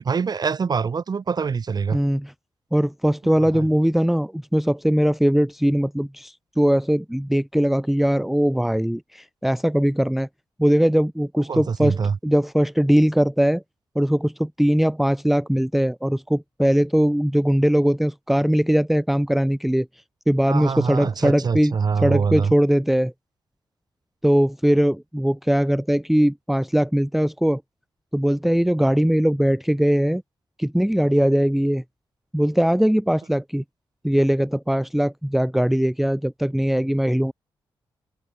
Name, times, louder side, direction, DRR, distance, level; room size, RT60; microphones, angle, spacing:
voice 1, 0.0-2.0 3.4-3.7 11.5-12.2 20.5-22.5, right 5 dB, 50° right, 1.4 m, -24 dB
voice 2, 1.9-2.3 2.7-10.3 10.6-12.0 12.2-13.6 14.0-19.9 20.3-21.7 22.0-23.1 24.2-27.6 28.1-30.2 30.6-31.8 32.3-33.6 34.0-37.3, equal, ahead, 0.6 m, -20 dB
cardioid pair, 70°, 9 cm